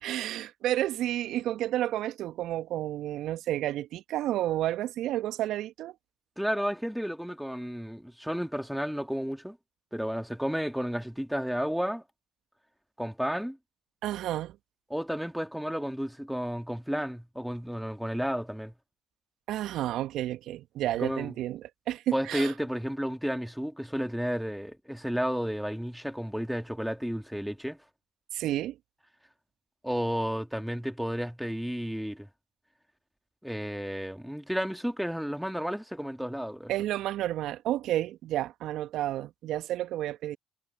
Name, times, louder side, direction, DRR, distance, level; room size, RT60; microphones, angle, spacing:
voice 1, 0.0-5.9 14.0-14.6 19.5-22.5 28.3-28.8 36.7-40.4, right 13 dB, 65° right, 1.8 m, -31 dB
voice 2, 6.4-9.6 9.9-12.0 13.0-13.6 14.9-18.7 21.0-21.3 22.1-27.8 29.8-32.3 33.4-36.7, equal, ahead, 2.7 m, -32 dB
hypercardioid pair, 50°, 0 cm